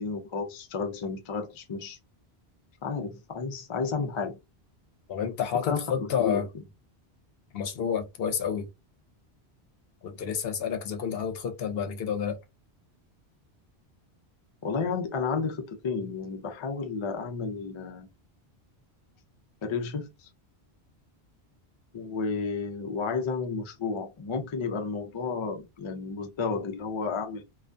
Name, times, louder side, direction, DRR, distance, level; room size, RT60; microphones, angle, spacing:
voice 1, 0.0-2.0 2.8-4.4 5.5-6.4 14.6-18.1 19.6-20.3 21.9-27.4, left 5 dB, 50° left, 0.3 m, -32 dB
voice 2, 5.1-6.5 7.5-8.7 10.0-12.4, left 7 dB, 70° left, 0.8 m, -29 dB
2.3 x 2.2 x 2.5 m
omnidirectional pair, 1.1 m